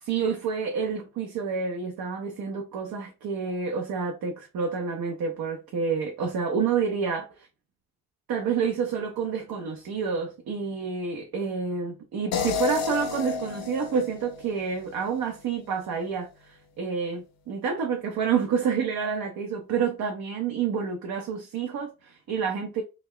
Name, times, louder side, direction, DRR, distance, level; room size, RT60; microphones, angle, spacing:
voice 1, 0.0-7.3 8.3-22.8, right 6 dB, 75° right, 0.5 m, -29 dB
sound 1, 12.3-15.4, left 6 dB, 90° left, 0.5 m, -32 dB
2.3 x 2.1 x 3.5 m
supercardioid pair, 45°, 35 cm